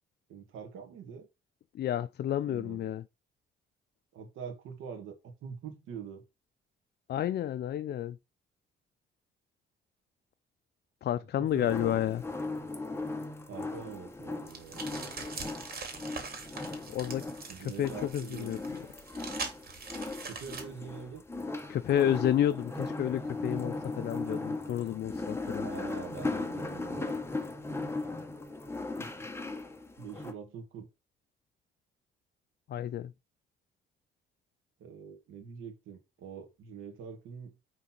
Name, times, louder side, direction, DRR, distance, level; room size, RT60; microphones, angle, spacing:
voice 1, 0.3-1.3 2.5-2.9 4.1-6.2 11.4-12.2 13.5-15.1 17.5-18.5 20.3-21.2 25.5-27.2 29.0-29.1 30.0-30.9 34.8-37.5, right 7 dB, 85° right, 2.0 m, -44 dB
voice 2, 1.7-3.0 7.1-8.2 11.0-12.2 16.9-17.3 17.6-18.6 21.7-25.7 32.7-33.1, left 11 dB, 55° left, 0.4 m, -30 dB
sound 1, 11.6-30.3, left 3 dB, 10° left, 1.2 m, -38 dB
sound 2, 14.5-20.6, right 4 dB, 50° right, 2.8 m, -42 dB
6.3 x 4.0 x 5.9 m
cardioid pair, 90°, 20 cm